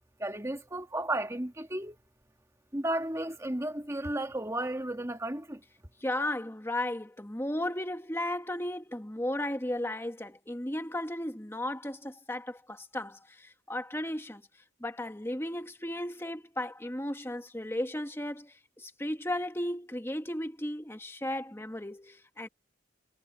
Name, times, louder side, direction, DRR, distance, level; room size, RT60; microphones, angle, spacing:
voice 1, 0.2-2.0 2.7-5.6, right 1 dB, 15° right, 1.7 m, -33 dB
voice 2, 6.0-14.4 14.8-22.5, left 1 dB, 10° left, 1.3 m, -35 dB
head